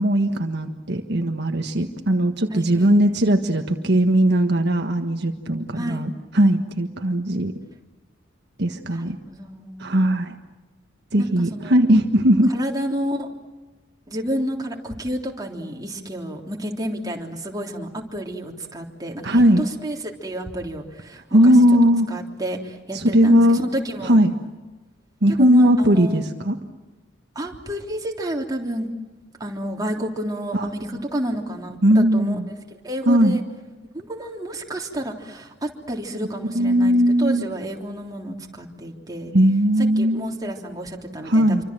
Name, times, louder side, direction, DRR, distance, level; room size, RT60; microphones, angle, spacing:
voice 1, 0.0-7.5 8.6-9.2 9.8-10.3 11.1-12.5 19.2-19.6 21.3-22.1 22.9-23.6 24.0-24.3 25.2-26.6 30.5-30.7 31.8-32.5 33.1-33.4 36.5-37.4 39.3-40.2 41.2-41.6, equal, 60° right, 5 dB, 1.5 m, -18 dB
voice 2, 2.5-3.1 5.8-6.0 8.9-9.9 11.2-11.8 12.5-13.3 14.1-21.5 22.1-24.2 25.4-26.3 27.4-28.9 29.4-32.4 32.8-33.4 33.9-39.3 40.0-41.6, equal, 20° right, 0 dB, 3.5 m, -30 dB
27.5 x 25.0 x 7.7 m, 1.2 s
head